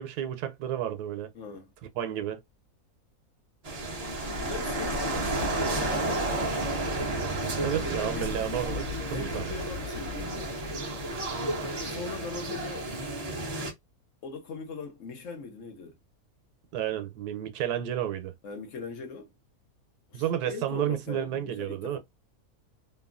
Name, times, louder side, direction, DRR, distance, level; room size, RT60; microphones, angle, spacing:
voice 1, 0.0-1.3 2.0-2.4 7.6-9.6 16.7-18.3 20.1-22.0, right 11 dB, 85° right, 1.2 m, -31 dB
voice 2, 1.3-1.7 4.4-6.7 7.7-8.5 9.1-10.5 11.8-12.9 14.2-16.0 18.4-19.3 20.1-22.0, left 4 dB, 60° left, 1.0 m, -40 dB
sound 1, 3.6-13.7, right 1 dB, 35° right, 0.6 m, -31 dB
2.9 x 2.3 x 2.4 m
omnidirectional pair, 1.6 m